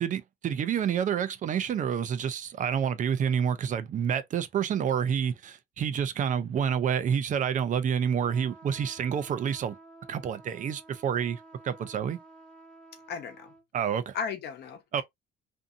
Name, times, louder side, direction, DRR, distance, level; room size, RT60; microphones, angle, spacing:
voice 1, 0.0-9.7 10.1-12.2 13.7-14.2 14.9-15.0, right 8 dB, 40° right, 0.4 m, -28 dB
sound 1, 8.2-13.6, right 2 dB, 5° left, 0.7 m, -52 dB
voice 2, 13.1-13.5 14.1-15.0, left 6 dB, 60° left, 0.9 m, -35 dB
2.6 x 2.6 x 2.5 m
cardioid pair, 110°, 20 cm